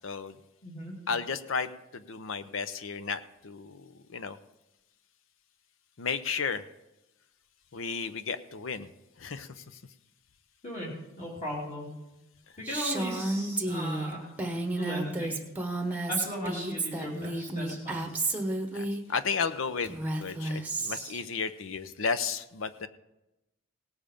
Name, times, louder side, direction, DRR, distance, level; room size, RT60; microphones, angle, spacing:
voice 1, 0.0-0.3 1.1-4.4 6.0-6.6 7.7-8.9 9.2-9.6 18.7-19.9 20.2-22.9, left 5 dB, 65° left, 12 dB, 0.6 m, -33 dB
voice 2, 0.6-0.9 10.6-12.0 12.6-14.3 14.6-15.4 16.1-18.1, equal, 35° left, -5 dB, 2.9 m, -37 dB
Female speech woman speaking, 12.7-19.0 19.8-21.2, right 2 dB, 10° right, 1.0 m, -32 dB
18.0 x 7.2 x 5.1 m, 0.93 s
head